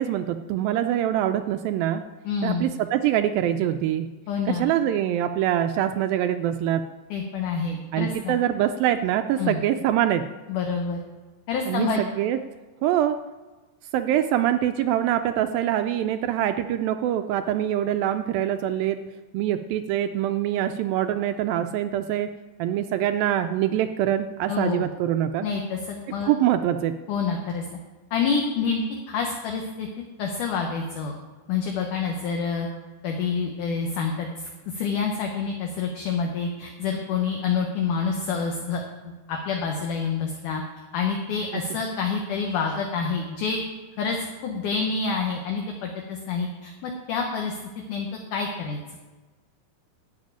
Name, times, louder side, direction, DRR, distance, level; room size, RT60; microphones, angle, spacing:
voice 1, 0.0-2.0 2.4-4.1 4.5-6.9 7.9-10.2 11.7-12.4 12.8-13.2 13.9-19.0 19.3-22.3 22.6-25.5 26.2-27.0 41.5-41.6, right 11 dB, 80° right, 8 dB, 2.1 m, -24 dB
voice 2, 2.3-2.7 4.3-4.7 7.1-8.4 9.4-9.6 10.5-11.0 11.5-12.0 24.5-24.9 25.4-26.3 27.1-27.7 28.1-29.9 30.2-31.1 31.5-32.7 33.0-40.6 40.9-43.6 44.0-44.2 44.4-48.8, left 5 dB, 65° left, 2 dB, 2.3 m, -27 dB
12.5 x 5.7 x 9.1 m, 1.2 s
omnidirectional pair, 4.5 m